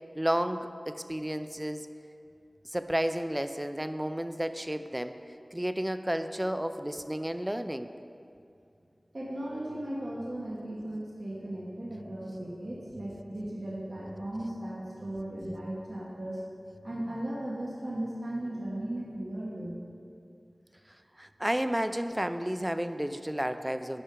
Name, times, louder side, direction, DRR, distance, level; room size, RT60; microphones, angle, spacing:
voice 1, 0.1-1.9 2.7-5.2 5.5-7.9 21.2-24.0, equal, 15° right, 10 dB, 0.4 m, -32 dB
voice 2, 9.1-16.4 16.8-19.7, right 1 dB, 70° right, -5 dB, 1.2 m, -36 dB
9.7 x 5.5 x 3.8 m, 2.5 s
wide cardioid pair, 40°, 0 cm